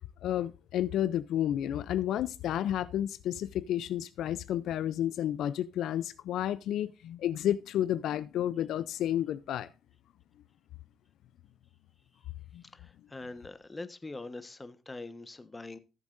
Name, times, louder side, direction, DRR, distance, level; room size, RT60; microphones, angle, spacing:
voice 1, 0.2-9.7 12.5-12.6, left 11 dB, 80° left, 0.4 m, -31 dB
voice 2, 12.6-15.8, left 2 dB, 20° left, 1.2 m, -43 dB
17.0 x 7.2 x 2.5 m
cardioid pair, 90°, 0 cm